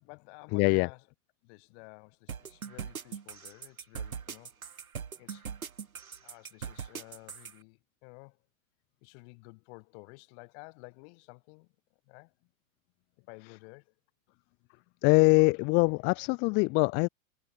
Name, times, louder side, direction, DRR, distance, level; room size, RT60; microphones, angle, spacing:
voice 1, 0.0-1.1 1.4-4.5 5.2-5.5 6.2-8.4 9.0-11.7 12.0-12.3 13.3-13.9, left 34 dB, 55° left, 5.1 m, -52 dB
voice 2, 0.5-0.9 15.0-17.1, left 30 dB, 30° left, 0.4 m, -23 dB
sound 1, 2.3-7.5, right 7 dB, 90° right, 2.8 m, -40 dB
hypercardioid pair, 100°, 41 cm